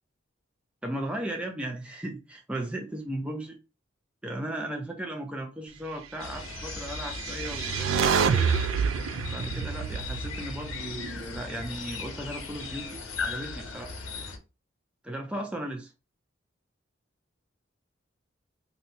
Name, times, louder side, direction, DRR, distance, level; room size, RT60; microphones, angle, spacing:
voice 1, 0.8-3.6 4.2-8.5 9.3-13.9 15.0-15.9, right 1 dB, 5° right, 0.3 m, -36 dB
sound 1, 6.2-14.4, left 4 dB, 80° left, 0.7 m, -38 dB
sound 2, 6.9-11.2, right 6 dB, 85° right, 0.3 m, -28 dB
2.7 x 2.1 x 4.0 m
head